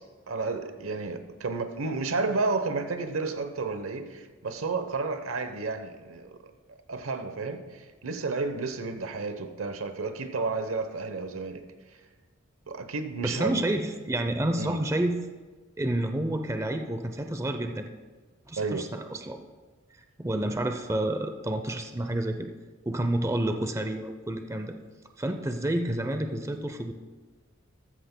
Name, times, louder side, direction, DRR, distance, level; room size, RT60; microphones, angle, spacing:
voice 1, 0.3-6.5 6.9-11.6 12.7-13.6 14.5-14.8 18.6-18.9, right 3 dB, 80° right, 8 dB, 0.9 m, -31 dB
voice 2, 13.2-15.3 15.8-17.9 18.5-19.4 20.2-22.5 22.8-24.7 25.2-26.9, right 1 dB, 15° right, 6 dB, 0.5 m, -29 dB
13.5 x 13.5 x 2.2 m, 1.4 s
head